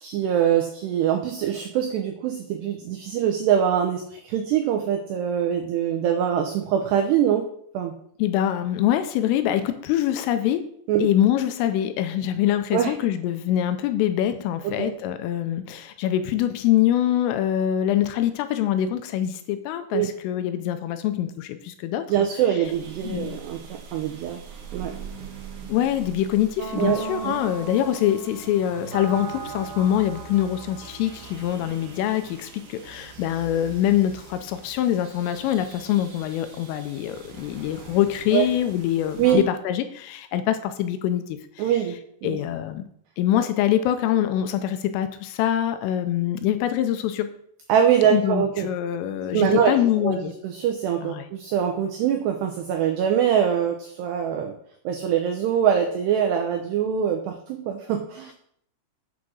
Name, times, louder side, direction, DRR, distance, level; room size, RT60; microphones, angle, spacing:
voice 1, 0.0-7.5 7.7-7.9 10.9-11.1 12.7-12.9 14.8-14.9 19.9-20.1 22.1-23.6 23.9-24.4 24.7-24.9 26.8-27.3 38.3-38.5 39.2-39.4 41.6-41.9 42.2-42.4 47.7-48.7 49.3-54.5 54.9-58.3, right 9 dB, 90° right, 3 dB, 2.4 m, -23 dB
voice 2, 8.2-10.7 11.0-22.1 23.0-23.4 25.7-41.6 42.2-42.8 43.2-47.3 48.1-50.3 51.0-51.3, left 11 dB, 85° left, 9 dB, 3.2 m, -24 dB
sound 1, 22.6-39.3, right 5 dB, 70° right, 1.9 m, -40 dB
8.3 x 6.3 x 6.3 m, 0.67 s
omnidirectional pair, 6.0 m